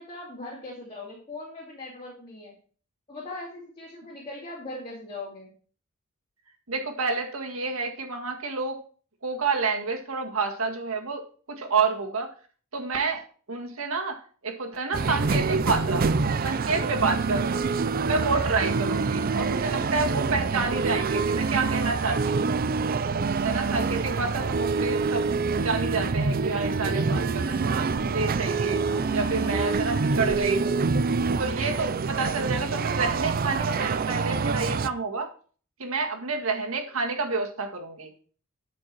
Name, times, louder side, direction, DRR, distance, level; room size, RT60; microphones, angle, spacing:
voice 1, 0.0-2.5 3.1-5.5 28.9-29.7, left 2 dB, 25° left, -5 dB, 2.8 m, -40 dB
voice 2, 6.7-8.8 9.2-11.2 11.6-12.3 12.7-16.1 16.4-17.6 18.1-22.4 23.4-28.8 29.1-30.9 31.4-35.3 35.8-38.1, right 4 dB, 90° right, 3 dB, 1.9 m, -29 dB
sound 1, 14.9-34.9, right 4 dB, 45° right, 0.4 m, -26 dB
12.5 x 5.2 x 4.5 m, 0.42 s
head